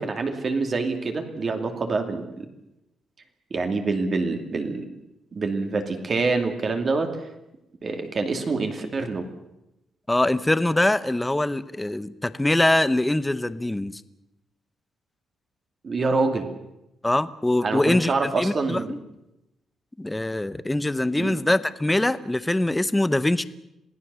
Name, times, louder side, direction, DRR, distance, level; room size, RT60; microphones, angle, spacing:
voice 1, 0.0-2.5 3.5-4.9 5.3-7.1 7.8-9.2 15.8-16.5 17.6-18.9 21.1-21.4, right 3 dB, 35° right, 5 dB, 2.5 m, -26 dB
voice 2, 10.1-14.0 17.0-19.0 20.0-23.4, left 1 dB, 10° left, 15 dB, 0.8 m, -23 dB
27.0 x 18.0 x 6.9 m, 0.90 s
cardioid pair, 160°, 0 cm